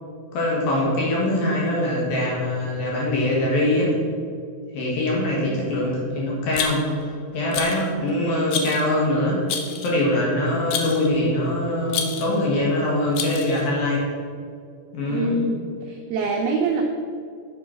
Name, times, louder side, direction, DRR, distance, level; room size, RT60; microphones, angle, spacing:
voice 1, 0.3-3.9 4.7-6.8 7.3-9.4 9.8-14.1 14.9-15.3, left 1 dB, 60° left, -4 dB, 3.1 m, -23 dB
Rattle, 6.5-7.0 7.5-7.9 8.5-8.9 9.5-10.0 10.7-11.1 11.9-12.4 13.1-13.7, left 7 dB, 80° left, 2.1 m, -29 dB
voice 2, 15.1-16.8, right 3 dB, 85° right, 1 dB, 2.2 m, -24 dB
7.5 x 7.0 x 5.9 m, 2.3 s
omnidirectional pair, 5.3 m